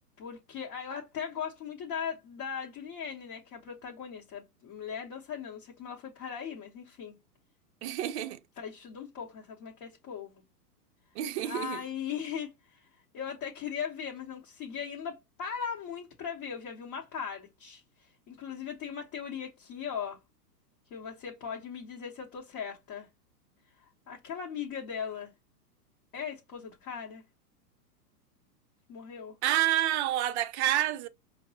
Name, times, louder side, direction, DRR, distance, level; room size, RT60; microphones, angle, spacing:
voice 1, 0.2-7.2 8.6-10.4 11.4-12.9 13.1-20.2 20.9-23.1 23.8-25.3 26.1-27.2 28.9-29.4, left 7 dB, 35° left, 1.0 m, -39 dB
voice 2, 7.8-8.4 11.2-11.8 29.4-31.1, right 13 dB, 45° right, 0.6 m, -28 dB
5.0 x 2.1 x 2.7 m
hypercardioid pair, 120°, 48 cm